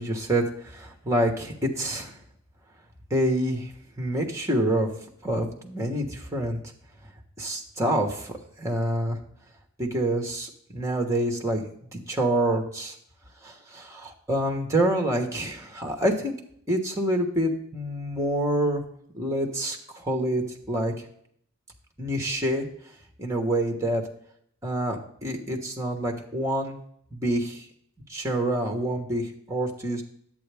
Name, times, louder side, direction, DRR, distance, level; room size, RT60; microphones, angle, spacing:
voice 1, 0.0-2.1 3.1-3.7 4.0-4.9 5.2-6.6 7.4-9.2 9.8-11.6 11.9-12.9 13.4-16.3 16.7-18.8 19.1-20.9 22.0-22.7 23.2-24.0 24.6-26.8 27.1-27.7 28.1-30.0, right 1 dB, 15° right, 3 dB, 1.2 m, -27 dB
10.5 x 8.2 x 3.4 m, 0.67 s
head